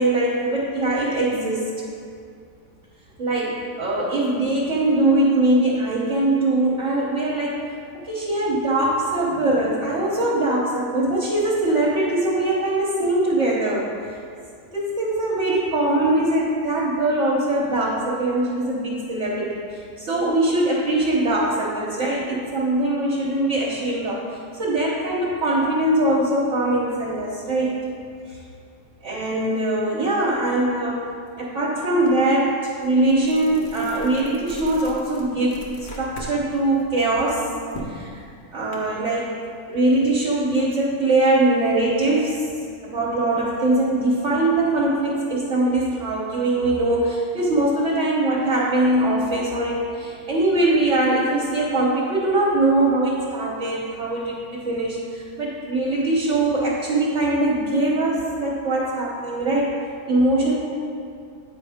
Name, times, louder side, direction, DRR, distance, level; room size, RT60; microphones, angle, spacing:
voice 1, 0.0-1.7 3.2-7.6 8.0-14.2 14.7-27.8 28.3-28.4 29.0-31.1 31.4-37.5 37.8-38.2 38.5-39.3 39.7-42.5 42.8-59.7 60.1-60.6, right 2 dB, 50° right, -7 dB, 1.2 m, -22 dB
sound 1, 32.1-32.2 32.6-36.3 36.7-38.8, equal, 40° left, 0.9 m, -39 dB
9.1 x 4.8 x 3.5 m, 2.4 s
omnidirectional pair, 1.7 m